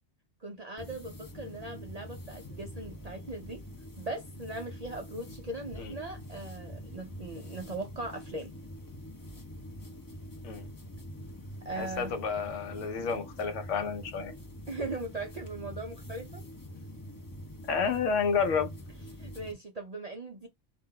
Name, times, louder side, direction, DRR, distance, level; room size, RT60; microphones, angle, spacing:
voice 1, 0.4-3.6 4.0-8.5 11.6-12.2 14.7-16.4 19.2-20.5, right 2 dB, 55° right, 0.4 m, -39 dB
sound 1, 0.8-19.5, equal, 30° left, 0.4 m, -45 dB
voice 2, 11.8-14.3 17.7-18.7, left 5 dB, 80° left, 1.0 m, -30 dB
2.5 x 2.2 x 3.5 m
omnidirectional pair, 1.3 m